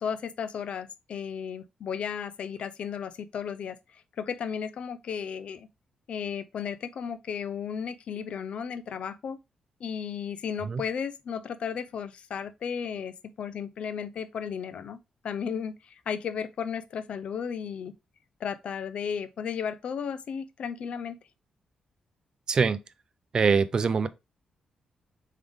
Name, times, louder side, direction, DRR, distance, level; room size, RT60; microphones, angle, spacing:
voice 1, 0.0-5.7 6.1-9.4 9.8-15.0 15.2-17.9 18.4-21.2, left 7 dB, 60° left, 0.5 m, -34 dB
voice 2, 22.5-22.8 23.3-24.1, right 5 dB, 40° right, 0.4 m, -23 dB
3.7 x 3.5 x 3.4 m
cardioid pair, 125°, 2 cm